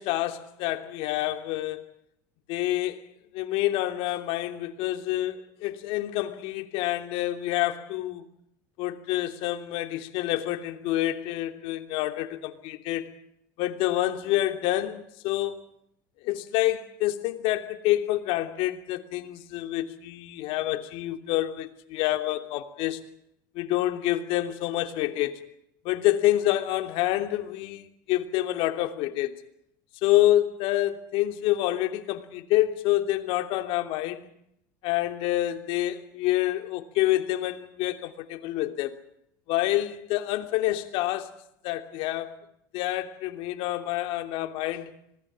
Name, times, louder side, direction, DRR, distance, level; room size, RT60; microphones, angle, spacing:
voice 1, 0.0-1.8 2.5-3.0 3.3-8.2 8.8-13.1 13.6-15.6 16.2-23.0 23.5-25.4 25.8-29.3 30.0-34.3 34.8-38.9 39.5-41.4 41.6-42.4 42.7-44.9, left 15 dB, 65° left, 3.0 m, -27 dB
26.0 x 19.5 x 8.8 m
supercardioid pair, 90°, 10 cm